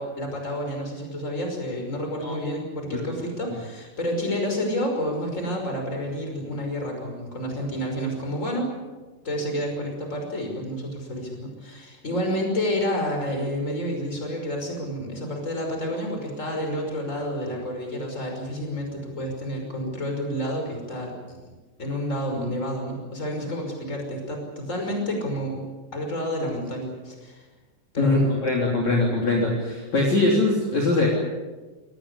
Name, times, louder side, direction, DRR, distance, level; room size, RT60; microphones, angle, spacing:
voice 1, 0.0-8.7 9.2-21.5 21.8-25.6 25.9-27.5 27.9-28.3, equal, 15° left, 3 dB, 5.6 m, -29 dB
voice 2, 28.0-31.1, left 2 dB, 40° left, -2 dB, 4.3 m, -22 dB
25.0 x 18.5 x 8.4 m, 1.3 s
omnidirectional pair, 5.1 m